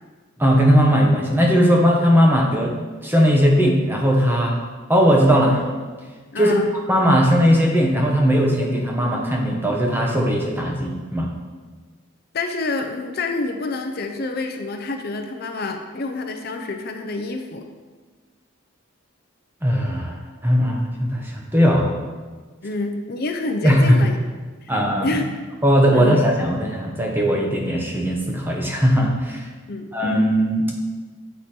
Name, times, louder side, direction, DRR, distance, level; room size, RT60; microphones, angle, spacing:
voice 1, 0.4-2.7 3.0-4.6 4.9-5.7 6.4-6.5 6.9-11.3 19.6-20.1 20.4-21.9 23.6-24.0 24.7-25.1 25.6-29.5 29.9-30.7, equal, 10° right, 0 dB, 0.9 m, -18 dB
voice 2, 6.3-6.7 12.3-17.7 22.6-24.2 24.6-24.7 25.0-25.3 25.9-26.2 29.7-29.9, left 3 dB, 50° left, 4 dB, 0.5 m, -27 dB
8.0 x 4.8 x 4.3 m, 1.4 s
head